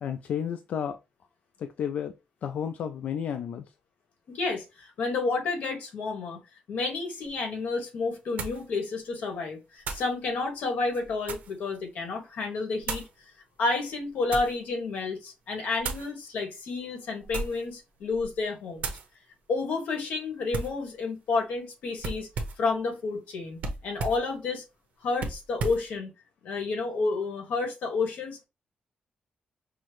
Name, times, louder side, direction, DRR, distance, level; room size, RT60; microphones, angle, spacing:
voice 1, 0.0-1.0 1.6-3.6, left 8 dB, 65° left, 0.3 m, -32 dB
voice 2, 4.3-6.4 6.7-13.0 13.6-18.9 19.5-22.3 22.6-24.6 25.0-26.1 26.4-28.4, left 3 dB, 85° left, 1.4 m, -30 dB
sound 1, 7.2-7.3 8.4-8.7 9.8-10.1 10.8-11.6 12.8-13.1 13.9-14.6 15.8-16.1 17.2-17.7 18.1-18.4 18.8-19.1 20.5-20.8 22.0-22.7 23.6-24.3 25.2-25.9, right 3 dB, 80° right, 0.8 m, -35 dB
5.5 x 2.1 x 3.0 m
wide cardioid pair, 155°, 3 cm